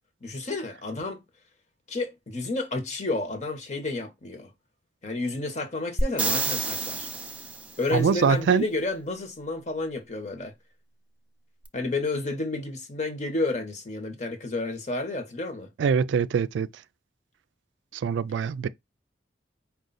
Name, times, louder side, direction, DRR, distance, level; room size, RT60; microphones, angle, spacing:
voice 1, 0.2-1.2 1.9-4.5 5.0-7.1 7.8-10.5 11.7-15.7, left 2 dB, 40° left, 0.9 m, -31 dB
sound 1, 6.0-7.8 11.6-11.7, right 3 dB, 10° right, 0.4 m, -28 dB
voice 2, 7.9-8.6 15.8-16.7 17.9-18.7, right 6 dB, 85° right, 0.3 m, -23 dB
4.9 x 2.3 x 3.8 m
head